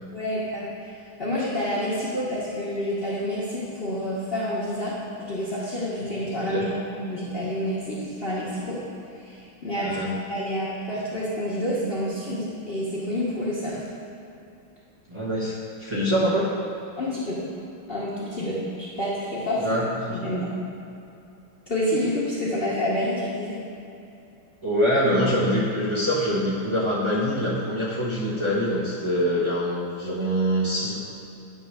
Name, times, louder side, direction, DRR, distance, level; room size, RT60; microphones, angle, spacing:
voice 1, 0.1-0.7 1.2-8.8 9.2-10.0 10.3-13.8 17.0-17.4 17.9-19.7 20.1-20.5 21.7-23.6, equal, 45° left, -8 dB, 0.8 m, -28 dB
voice 2, 9.8-10.1 15.1-16.5 19.6-20.3 24.6-31.0, equal, 40° right, -7 dB, 0.4 m, -24 dB
8.8 x 3.1 x 5.8 m, 2.7 s
omnidirectional pair, 2.3 m